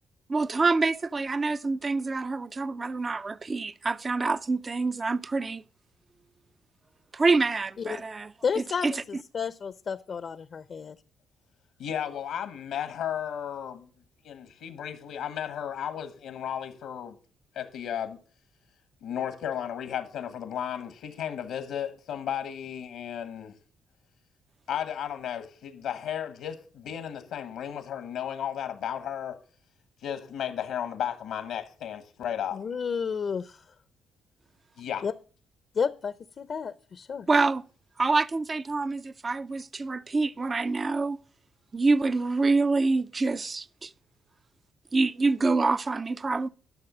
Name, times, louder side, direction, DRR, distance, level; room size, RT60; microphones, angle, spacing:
voice 1, 0.3-5.6 7.1-9.0 37.3-37.6 38.0-41.2 41.7-43.9 44.9-46.5, right 3 dB, 30° right, 0.4 m, -26 dB
voice 2, 8.4-11.0 32.5-33.6 35.0-35.1 35.7-37.3, left 6 dB, 50° left, 0.5 m, -31 dB
voice 3, 11.8-13.9 14.2-17.1 17.5-18.2 19.0-23.5 24.7-29.4 30.0-32.6 34.8-35.1, left 9 dB, 85° left, 1.1 m, -34 dB
11.0 x 6.3 x 6.1 m
cardioid pair, 90°, 0 cm